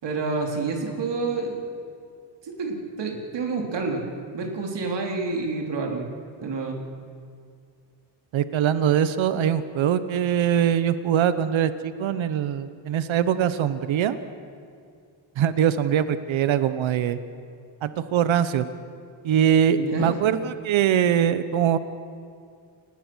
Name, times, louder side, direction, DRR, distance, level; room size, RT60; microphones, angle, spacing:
voice 1, 0.0-1.6 2.4-4.0 4.3-6.1 6.4-6.8 19.7-20.1, right 4 dB, 65° right, 1 dB, 3.7 m, -28 dB
voice 2, 8.3-14.2 15.4-17.2 17.8-18.7 19.2-21.8, right 9 dB, 85° right, 12 dB, 1.1 m, -22 dB
29.5 x 19.5 x 6.3 m, 2.3 s
cardioid pair, 110°, 46 cm